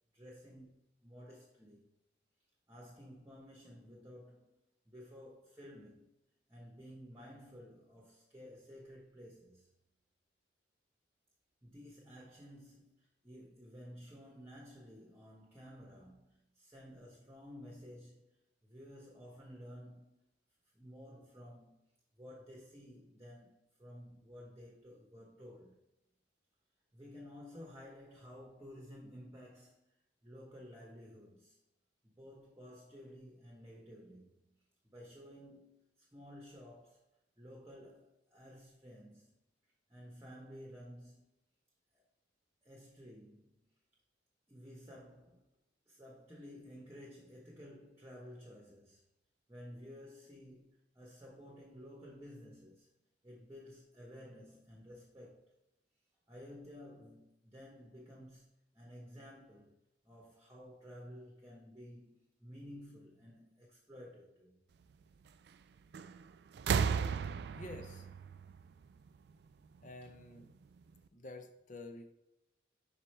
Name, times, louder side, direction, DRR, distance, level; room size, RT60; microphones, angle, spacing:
voice 1, 0.1-1.8 2.7-6.1 6.5-9.7 11.6-18.3 18.6-20.2 20.7-21.8 22.2-25.8 26.9-29.9 30.2-31.6 32.0-34.5 34.8-37.0 37.4-39.4 39.9-41.2 41.9-42.0 42.6-43.7 44.5-45.4 45.9-49.0 49.5-55.6 56.3-58.5 58.7-59.8 60.0-64.6, equal, 15° right, 1.0 m, -53 dB
sound 1, 65.9-66.2 66.5-69.3 70.4-70.5, right 6 dB, 55° right, 0.3 m, -35 dB
voice 2, 67.5-68.1 69.8-70.5 71.1-72.1, left 2 dB, 40° left, 0.6 m, -49 dB
5.5 x 4.9 x 4.3 m
head